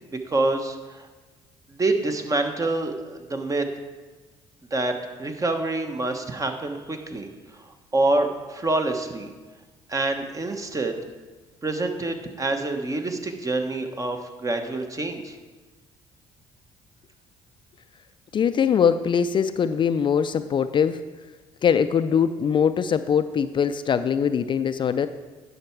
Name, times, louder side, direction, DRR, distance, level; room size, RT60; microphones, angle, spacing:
voice 1, 0.1-1.1 1.7-3.7 4.7-4.9 5.2-9.3 9.9-11.0 11.6-15.4, right 2 dB, 30° right, 5 dB, 1.2 m, -26 dB
voice 2, 18.3-21.0 21.6-25.1, left 7 dB, 45° left, 11 dB, 0.4 m, -22 dB
10.5 x 5.7 x 4.6 m, 1.3 s
supercardioid pair, 70°, 12 cm